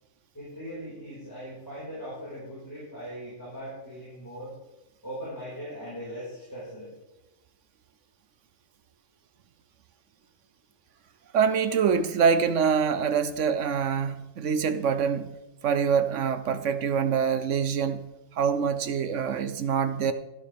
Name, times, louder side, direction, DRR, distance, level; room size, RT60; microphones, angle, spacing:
voice 1, 0.3-4.5 5.0-6.9, equal, 15° left, 5.3 m, -39 dB
voice 2, 11.3-15.4 15.6-18.0 18.3-20.1, right 6 dB, 65° right, 1.0 m, -25 dB
14.0 x 11.0 x 3.5 m
omnidirectional pair, 1.5 m